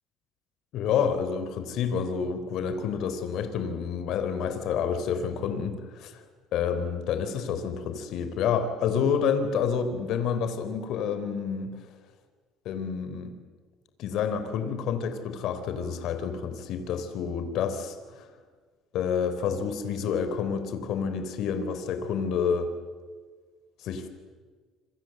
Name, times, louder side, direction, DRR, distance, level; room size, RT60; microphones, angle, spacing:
voice 1, 0.7-6.2 6.5-11.8 12.7-13.3 14.0-18.3 18.9-22.7 23.8-24.1, left 7 dB, 65° left, 9 dB, 3.8 m, -29 dB
28.0 x 26.5 x 7.9 m, 1.5 s
cardioid pair, 110°, 0 cm